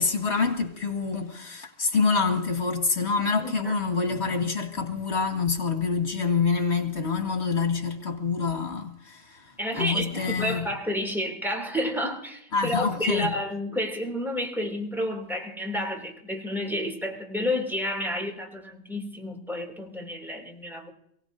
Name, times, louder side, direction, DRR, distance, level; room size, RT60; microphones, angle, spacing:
voice 1, 0.0-10.7 12.5-13.3, left 5 dB, 80° left, 2.2 m, -26 dB
voice 2, 3.4-3.7 9.6-20.9, left 1 dB, ahead, 2.7 m, -30 dB
28.5 x 17.5 x 2.7 m
omnidirectional pair, 1.1 m